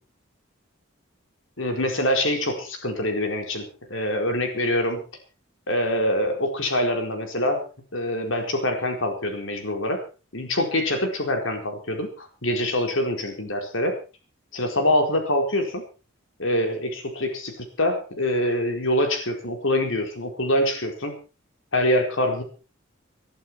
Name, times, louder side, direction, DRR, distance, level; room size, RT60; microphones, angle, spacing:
voice 1, 1.6-5.0 5.7-7.6 7.9-10.0 10.3-13.9 14.5-15.8 16.4-21.1 21.7-22.4, left 1 dB, 80° left, 4 dB, 4.3 m, -25 dB
21.0 x 12.0 x 4.6 m, 0.34 s
head